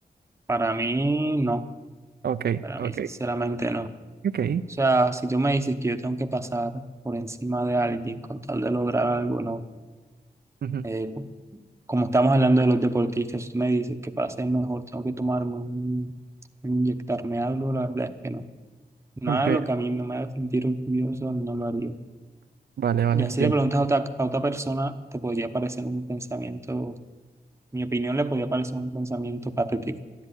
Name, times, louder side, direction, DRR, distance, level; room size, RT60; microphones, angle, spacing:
voice 1, 0.5-1.7 2.6-3.9 4.8-9.6 10.8-11.3 11.9-16.1 16.6-18.4 19.2-22.0 23.1-27.0 27.7-30.0, right 2 dB, 15° right, 8 dB, 0.8 m, -26 dB
voice 2, 2.2-3.1 4.2-4.6 10.6-10.8 19.3-19.6 22.8-23.5, right 8 dB, 80° right, 11 dB, 0.5 m, -25 dB
13.0 x 11.0 x 9.7 m, 1.3 s
wide cardioid pair, 130°, 16 cm